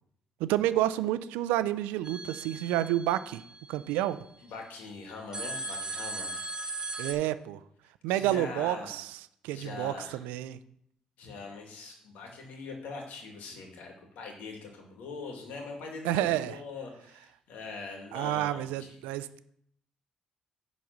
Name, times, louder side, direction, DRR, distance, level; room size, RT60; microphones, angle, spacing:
voice 1, 0.4-3.4 3.7-4.2 7.0-7.6 8.0-9.1 9.4-10.6 16.0-16.6 18.1-19.4, right 13 dB, 90° right, 14 dB, 0.4 m, -29 dB
sound 1, 2.0-4.3 5.3-7.1, right 2 dB, 30° right, 1.9 m, -38 dB
voice 2, 4.4-6.5 8.1-9.0 9.5-10.2 11.2-19.0, left 4 dB, 80° left, 1 dB, 2.3 m, -42 dB
10.0 x 4.1 x 6.0 m, 0.70 s
supercardioid pair, 65°, 3 cm